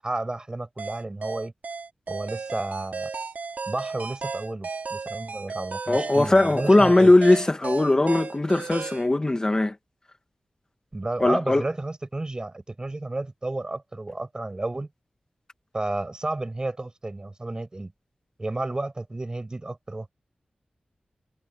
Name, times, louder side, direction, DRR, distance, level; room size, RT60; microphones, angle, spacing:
voice 1, 0.0-1.5 2.1-3.1 3.7-7.1 10.9-14.9 15.7-17.9 18.4-20.1, right 2 dB, 30° right, 6.8 m, -32 dB
sound 1, 0.8-9.1, right 4 dB, 75° right, 2.7 m, -34 dB
voice 2, 5.9-9.8 11.2-11.6, left 2 dB, 25° left, 2.0 m, -19 dB
wide cardioid pair, 105°, 3 cm